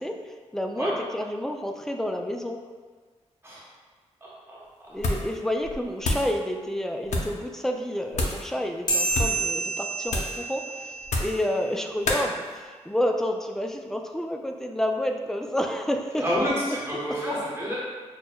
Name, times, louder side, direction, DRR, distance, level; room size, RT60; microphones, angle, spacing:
voice 1, 0.0-2.6 4.9-16.5 16.9-17.0, equal, 5° left, 3 dB, 0.3 m, -30 dB
voice 2, 4.2-4.6 16.2-17.7, equal, 20° right, -7 dB, 0.9 m, -28 dB
sound 1, 5.0-5.4 5.6-6.3 7.0-7.4 8.1-8.5 9.1-9.4 10.1-10.4 11.0-11.4 12.1-12.3, left 2 dB, 85° left, 0.5 m, -28 dB
sound 2, 8.9-11.7, right 2 dB, 35° left, 1.1 m, -29 dB
6.0 x 2.2 x 2.2 m, 1.5 s
cardioid pair, 85°, 12 cm